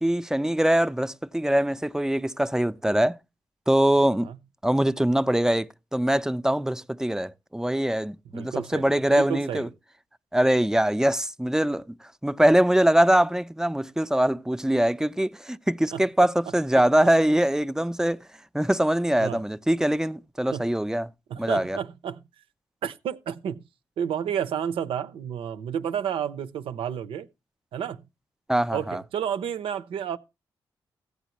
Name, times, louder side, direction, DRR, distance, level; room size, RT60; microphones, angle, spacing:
voice 1, 0.0-3.2 3.7-4.3 4.6-9.7 10.3-11.8 12.2-18.2 18.5-21.1 21.4-21.8 28.5-29.0, right 1 dB, 5° right, 0.5 m, -23 dB
voice 2, 4.0-4.4 8.3-9.7 15.9-16.1 16.7-17.1 19.2-19.4 20.5-20.7 21.3-22.2 22.8-23.6 24.0-27.3 27.7-28.0 28.7-30.2, right 9 dB, 85° right, 0.6 m, -31 dB
15.0 x 8.1 x 3.0 m
cardioid pair, 60°, 9 cm